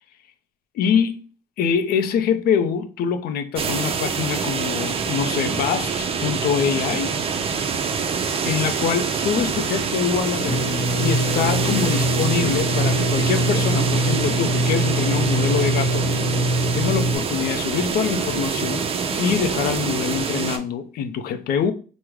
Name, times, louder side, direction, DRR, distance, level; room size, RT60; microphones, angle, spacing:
voice 1, 0.7-1.2 1.6-7.1 8.4-10.6 11.0-18.9 19.2-21.7, left 7 dB, 65° left, 0.4 m, -24 dB
sound 1, 3.6-20.6, right 6 dB, 35° right, 0.4 m, -25 dB
sound 2, 10.5-17.2, equal, 40° left, 0.8 m, -23 dB
3.5 x 2.0 x 3.0 m
cardioid pair, 110°, 17 cm